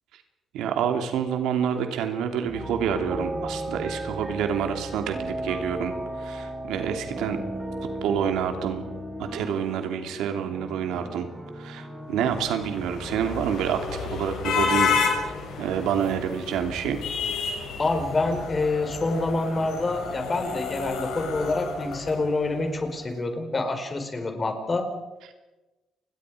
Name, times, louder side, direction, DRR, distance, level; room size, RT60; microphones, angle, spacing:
voice 1, 0.5-7.4 8.0-8.9 9.2-11.3 11.6-14.9 15.6-17.0, right 8 dB, 90° right, 6 dB, 2.8 m, -28 dB
sound 1, 2.5-21.4, equal, 15° right, 7.3 m, -44 dB
sound 2, 2.5-9.3, right 1 dB, 35° right, 4.1 m, -35 dB
sound 3, 12.3-22.7, left 5 dB, 80° left, 6.9 m, -30 dB
voice 2, 17.8-24.9, left 2 dB, 30° left, 6 dB, 4.9 m, -27 dB
29.5 x 21.0 x 5.1 m, 1.1 s
cardioid pair, 90°, 0 cm